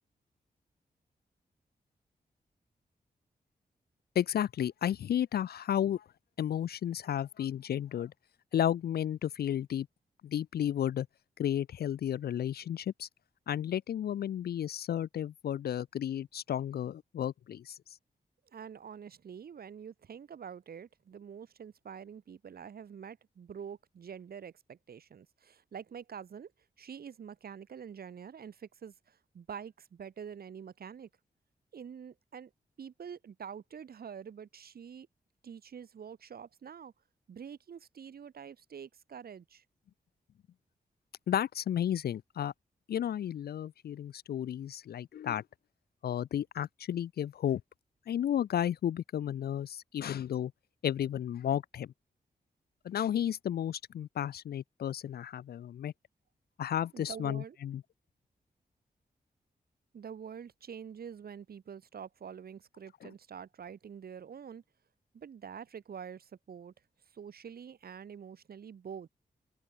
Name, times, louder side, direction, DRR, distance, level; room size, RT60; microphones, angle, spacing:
voice 1, 4.2-6.0 6.4-8.1 8.5-9.9 10.2-11.1 11.4-13.1 13.5-17.8 41.3-42.5 42.9-45.4 46.0-47.6 48.1-50.5 50.8-51.9 52.8-55.9 56.6-57.8 63.0-63.1, left 10 dB, 70° left, 0.4 m, -33 dB
voice 2, 18.5-26.5 26.8-31.1 31.7-32.5 32.8-35.1 35.4-36.9 37.3-39.6 56.9-57.6 59.9-64.6 65.1-66.7 67.1-69.1, right 7 dB, 70° right, 1.0 m, -46 dB
cardioid pair, 50°, 17 cm